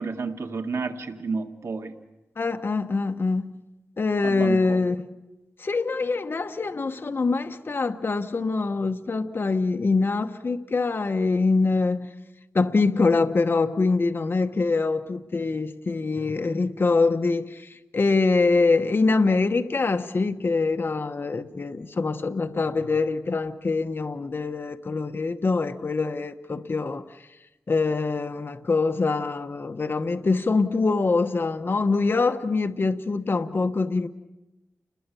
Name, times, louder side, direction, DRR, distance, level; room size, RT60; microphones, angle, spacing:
voice 1, 0.0-1.9 4.2-4.8, right 4 dB, 75° right, 1.9 m, -31 dB
voice 2, 2.4-3.5 4.0-5.0 5.6-12.1 12.5-27.0 27.7-34.1, left 3 dB, 50° left, 1.0 m, -24 dB
29.5 x 21.0 x 7.0 m
wide cardioid pair, 95°, 5 cm